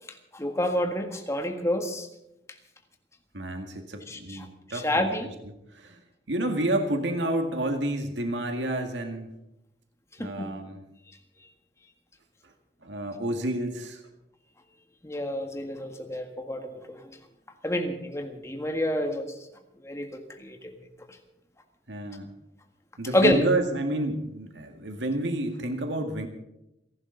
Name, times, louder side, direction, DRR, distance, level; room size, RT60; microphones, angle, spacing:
voice 1, 0.3-2.1 4.1-5.3 10.2-10.5 15.0-17.0 17.6-19.3 19.8-20.1 20.4-20.7 23.1-23.4, left 1 dB, 15° left, 5 dB, 1.8 m, -28 dB
voice 2, 3.3-5.3 5.7-6.0 6.3-9.3 10.2-10.8 12.8-14.0 21.9-22.3 23.0-26.3, right 1 dB, 85° right, 5 dB, 2.0 m, -30 dB
29.0 x 11.5 x 4.0 m, 0.87 s
head